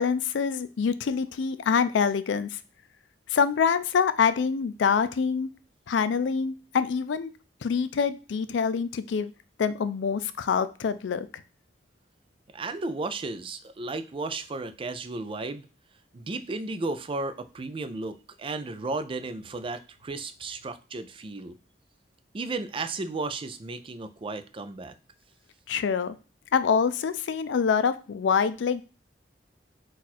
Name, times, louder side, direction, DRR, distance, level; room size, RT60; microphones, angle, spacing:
voice 1, 0.0-2.6 3.3-5.5 5.9-7.3 7.6-9.3 9.6-11.3 25.7-26.2 26.5-28.8, left 6 dB, 80° left, 13 dB, 0.4 m, -25 dB
voice 2, 12.5-15.7 16.1-21.6 22.3-24.9, right 3 dB, 30° right, 10 dB, 0.4 m, -34 dB
4.3 x 2.4 x 4.1 m, 0.33 s
head